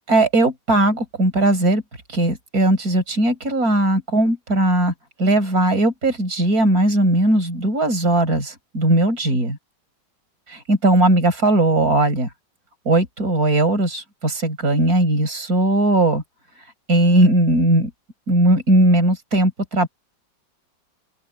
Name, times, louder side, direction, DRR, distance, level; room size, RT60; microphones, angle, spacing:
voice 1, 0.1-1.8 2.1-4.9 5.2-9.6 10.5-12.3 12.9-16.2 16.9-17.9 18.3-19.9, right 1 dB, 50° right, 5.8 m, -18 dB
open air
omnidirectional pair, 2.0 m